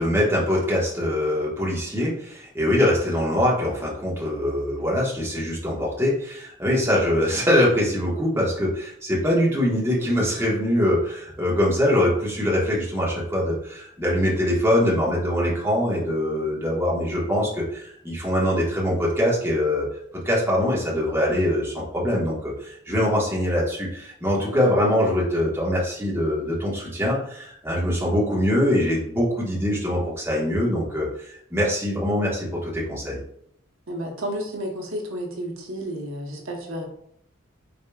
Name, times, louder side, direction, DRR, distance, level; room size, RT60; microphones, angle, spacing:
voice 1, 0.0-19.9 20.2-33.2, left 1 dB, 10° right, -5 dB, 1.3 m, -23 dB
voice 2, 33.9-36.8, equal, 80° right, 0 dB, 1.0 m, -31 dB
5.2 x 4.2 x 2.3 m, 0.70 s
head